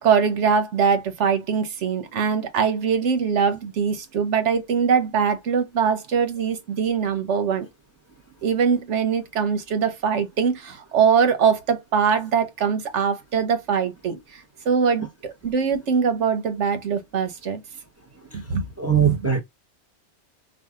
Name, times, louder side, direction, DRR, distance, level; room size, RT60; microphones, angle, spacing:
voice 1, 0.0-7.7 8.4-17.6 18.3-19.2, right 6 dB, 85° right, 1.2 m, -22 dB
voice 2, 18.8-19.4, right 8 dB, 15° right, 0.8 m, -21 dB
4.8 x 2.3 x 3.7 m
omnidirectional pair, 1.2 m